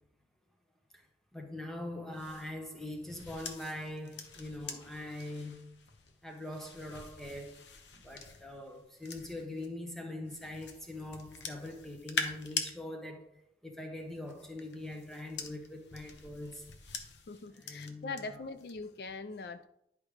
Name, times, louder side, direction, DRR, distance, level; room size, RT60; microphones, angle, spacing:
voice 1, 1.3-5.7 6.2-7.6 7.9-13.3 13.6-16.7 17.4-18.5, left 1 dB, ahead, 3 dB, 1.0 m, -43 dB
sound 1, 2.1-9.7 10.3-12.7 14.0-18.2 18.6-18.9, left 5 dB, 90° left, 0.9 m, -44 dB
voice 2, 17.3-19.7, left 3 dB, 60° left, 11 dB, 0.4 m, -42 dB
10.5 x 5.0 x 3.2 m, 0.76 s
head